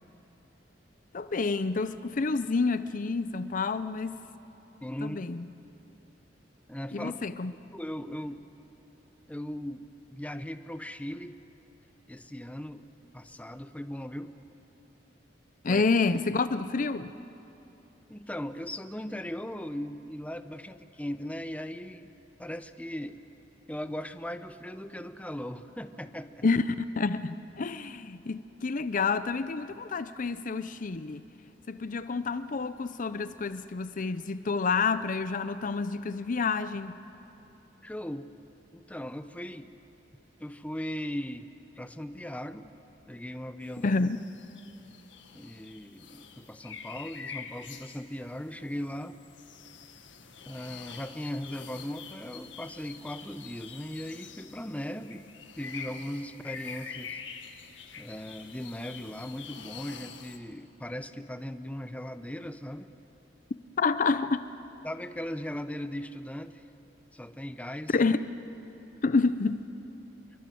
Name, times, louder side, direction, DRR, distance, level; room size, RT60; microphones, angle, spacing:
voice 1, 1.1-4.2 5.0-5.5 6.9-7.5 15.6-17.1 26.4-26.6 27.0-31.3 31.7-37.0 43.8-44.2 63.8-64.4 67.9-68.3 69.0-69.6, left 4 dB, 45° left, 0.6 m, -28 dB
voice 2, 4.8-5.2 6.7-7.2 7.7-8.4 9.3-11.4 12.1-12.9 13.1-14.3 15.7-15.8 18.1-22.1 22.4-23.2 23.7-26.4 37.8-38.3 38.7-39.7 40.4-41.5 41.8-42.7 43.1-43.9 45.3-49.2 50.5-55.3 55.6-57.2 58.0-62.9 64.8-66.6 67.1-67.9, equal, 10° left, 0.8 m, -38 dB
sound 1, 43.6-60.4, left 6 dB, 90° left, 1.7 m, -46 dB
27.5 x 22.5 x 7.8 m
head